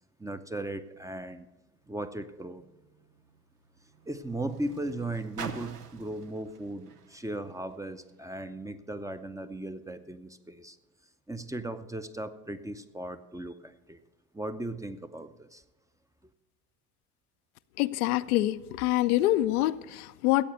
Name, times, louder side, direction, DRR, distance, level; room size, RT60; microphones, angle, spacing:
voice 1, 0.2-1.5 1.9-2.6 4.1-10.8 11.3-14.0 14.3-15.6, right 1 dB, 5° right, 10 dB, 0.6 m, -37 dB
Car, 1.8-8.4 9.2-9.3, right 5 dB, 85° right, 0.9 m, -47 dB
voice 2, 17.8-20.4, left 16 dB, 70° left, 12 dB, 0.6 m, -26 dB
14.0 x 8.3 x 6.6 m, 1.0 s
figure-of-eight pair, 65°, 46 cm